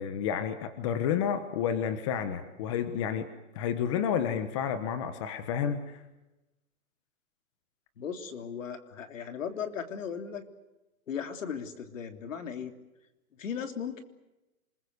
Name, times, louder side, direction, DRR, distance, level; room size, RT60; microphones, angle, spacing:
voice 1, 0.0-3.3 3.5-6.0, left 8 dB, 20° left, 10 dB, 1.2 m, -30 dB
voice 2, 8.0-10.4 11.1-12.7 13.4-14.0, left 7 dB, 60° left, 8 dB, 3.3 m, -37 dB
28.0 x 21.5 x 8.2 m, 0.99 s
hypercardioid pair, 175°, 43 cm